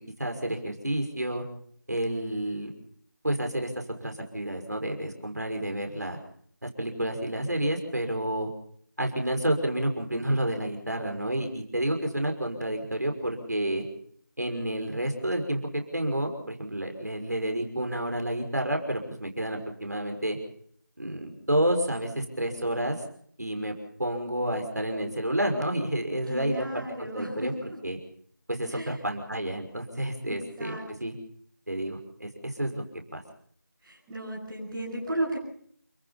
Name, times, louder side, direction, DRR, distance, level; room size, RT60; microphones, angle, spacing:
voice 1, 0.0-1.4 1.9-2.7 3.2-3.7 4.0-6.2 6.6-8.5 9.0-13.8 14.4-20.4 21.0-23.0 23.4-23.7 24.0-28.0 28.5-31.1 31.7-32.8 33.1-33.2, right 1 dB, 55° right, 4 dB, 5.9 m, -30 dB
voice 2, 26.3-27.8 28.7-28.9 30.2-30.8 33.8-35.3, right 1 dB, 5° right, -12 dB, 6.7 m, -34 dB
29.5 x 19.5 x 5.7 m, 0.63 s
figure-of-eight pair, 170°, 11 cm